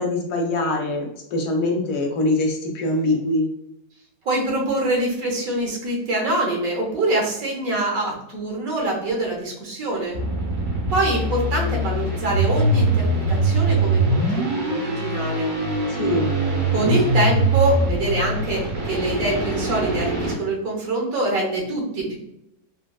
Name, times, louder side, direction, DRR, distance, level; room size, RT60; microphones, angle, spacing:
voice 1, 0.0-3.5 15.9-16.3, left 2 dB, 75° left, 1 dB, 1.2 m, -23 dB
voice 2, 4.2-10.2 10.9-15.5 16.7-22.2, right 2 dB, 65° right, -1 dB, 1.3 m, -24 dB
sound 1, 10.1-20.3, right 2 dB, 40° right, 0.8 m, -22 dB
3.6 x 2.4 x 2.2 m, 0.80 s
omnidirectional pair, 1.7 m